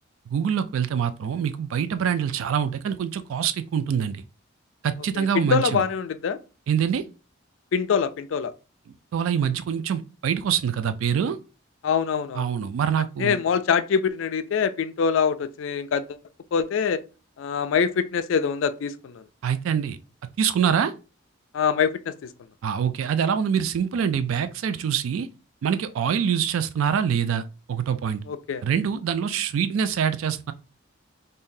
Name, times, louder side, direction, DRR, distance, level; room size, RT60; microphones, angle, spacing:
voice 1, 0.3-4.2 4.8-5.8 6.7-7.0 9.1-11.4 12.4-13.4 19.4-20.0 20.4-20.9 22.6-25.3 25.6-27.4 27.7-28.2 28.6-30.5, right 8 dB, 80° right, 0.3 m, -25 dB
voice 2, 5.1-6.4 7.7-8.5 11.8-12.5 13.2-16.2 16.5-17.0 17.4-19.2 21.5-22.3 28.3-28.6, left 6 dB, 70° left, 0.3 m, -24 dB
2.7 x 2.6 x 3.7 m
head